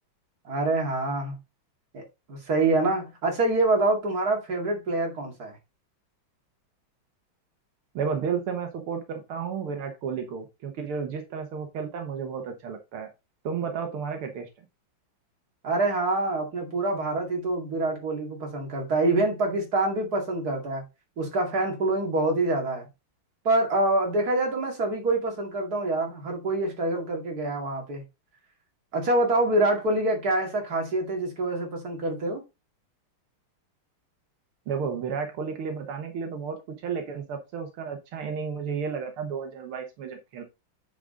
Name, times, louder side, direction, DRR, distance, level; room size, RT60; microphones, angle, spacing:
voice 1, 0.4-1.3 1.9-2.0 2.3-5.6 15.6-20.8 21.2-22.9 23.4-28.0 28.9-32.4, right 2 dB, 45° right, 2.8 m, -26 dB
voice 2, 8.0-13.1 13.4-14.5 34.7-36.6 36.8-40.4, right 6 dB, 85° right, 2.1 m, -32 dB
9.1 x 4.9 x 3.8 m
omnidirectional pair, 2.3 m